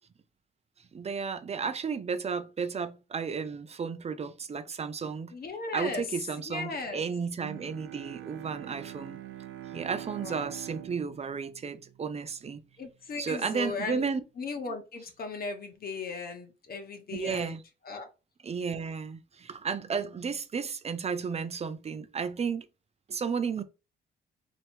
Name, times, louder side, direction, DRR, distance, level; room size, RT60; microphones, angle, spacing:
voice 1, 0.9-5.3 5.7-9.2 9.7-12.6 13.2-14.2 17.1-17.6 18.4-22.7 23.1-23.6, right 5 dB, 30° right, 0.6 m, -33 dB
voice 2, 5.3-6.0 6.5-7.0 10.1-10.5 12.8-14.0 14.4-17.6 17.8-18.1, left 4 dB, 50° left, 1.1 m, -37 dB
Bowed string instrument, 7.4-12.6, right 12 dB, 80° right, 0.5 m, -44 dB
3.3 x 3.0 x 4.3 m
cardioid pair, 90°, 20 cm